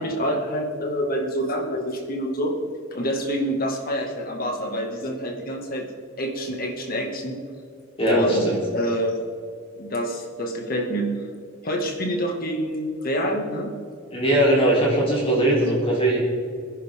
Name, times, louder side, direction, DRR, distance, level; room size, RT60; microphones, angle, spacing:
voice 1, 0.0-2.6 2.9-5.9 6.2-7.4 8.1-8.4 8.7-9.2 9.8-11.1 11.6-13.7, equal, 45° left, 2 dB, 2.1 m, -27 dB
voice 2, 8.0-8.6 14.1-16.2, right 1 dB, 30° left, -5 dB, 3.6 m, -20 dB
23.0 x 10.5 x 3.7 m, 2.2 s
head